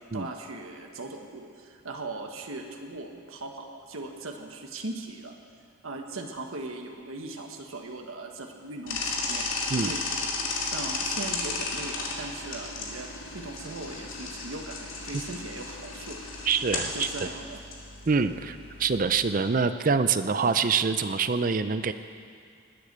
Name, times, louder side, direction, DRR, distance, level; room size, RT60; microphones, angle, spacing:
voice 1, 0.0-5.4 5.8-9.5 9.8-10.0 10.5-13.1 13.3-16.2 16.9-17.6, right 2 dB, 85° right, 3 dB, 1.3 m, -39 dB
sound 1, 8.9-19.3, left 3 dB, 75° left, 2.4 m, -34 dB
voice 2, 16.5-17.1 18.1-21.9, right 5 dB, 40° right, 11 dB, 0.4 m, -25 dB
20.0 x 8.3 x 6.7 m, 2.3 s
head